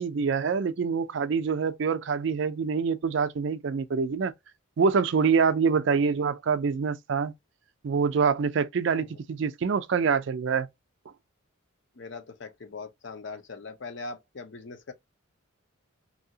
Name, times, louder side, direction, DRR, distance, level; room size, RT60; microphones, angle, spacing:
voice 1, 0.0-4.3 4.8-7.3 7.8-10.7, right 5 dB, 60° right, 0.4 m, -25 dB
voice 2, 11.9-14.9, left 3 dB, 60° left, 0.6 m, -41 dB
2.8 x 2.7 x 2.6 m
head